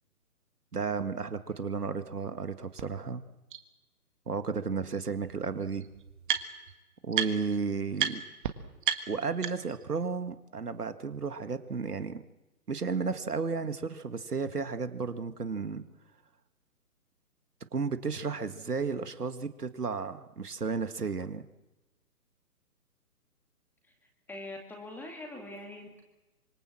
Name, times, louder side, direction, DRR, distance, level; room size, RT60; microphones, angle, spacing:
voice 1, 0.7-3.2 4.3-5.9 7.0-8.2 9.1-12.2 12.7-15.8 17.7-21.4, right 5 dB, 75° right, 10 dB, 1.9 m, -33 dB
sound 1, 2.8-2.9 3.5-3.6 4.9-5.0 5.2-6.7 7.1-7.6 8.0-8.1 8.4-8.5 8.8-9.8, right 9 dB, 30° right, 1.6 m, -32 dB
voice 2, 24.3-26.0, left 1 dB, 5° left, 2 dB, 2.2 m, -43 dB
25.5 x 24.5 x 7.6 m, 1.1 s
figure-of-eight pair, 135°, 47 cm